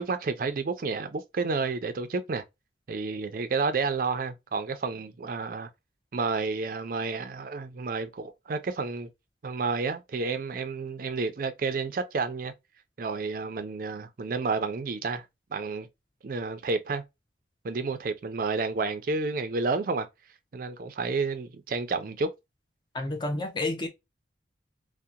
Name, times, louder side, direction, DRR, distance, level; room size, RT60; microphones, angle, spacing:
voice 1, 0.0-2.4 2.9-5.7 6.1-9.1 9.4-12.5 13.0-15.2 15.5-15.9 16.2-17.0 17.6-20.1 20.5-22.3, right 4 dB, 45° right, 0.4 m, -30 dB
voice 2, 22.9-23.9, left 2 dB, 25° left, 0.5 m, -30 dB
2.7 x 2.1 x 2.2 m
head